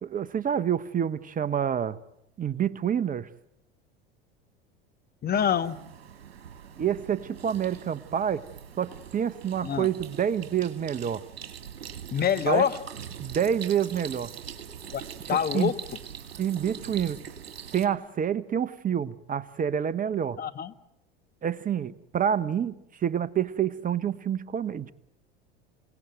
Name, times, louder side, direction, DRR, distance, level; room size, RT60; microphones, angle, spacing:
voice 1, 0.0-2.0 2.4-3.3 6.8-8.4 8.8-11.2 12.5-12.6 13.2-14.3 15.3-15.7 16.4-17.2 17.7-20.4 21.4-22.7 23.0-24.9, right 9 dB, 25° right, 16 dB, 1.0 m, -27 dB
voice 2, 5.2-5.8 9.6-9.9 12.1-12.8 14.9-15.0 15.3-15.7 20.4-20.7, left 8 dB, 30° left, 12 dB, 1.2 m, -25 dB
sound 1, 5.3-17.9, right 8 dB, 80° right, 2.3 m, -43 dB
28.0 x 18.0 x 9.2 m, 0.82 s
hypercardioid pair, 85°, 30 cm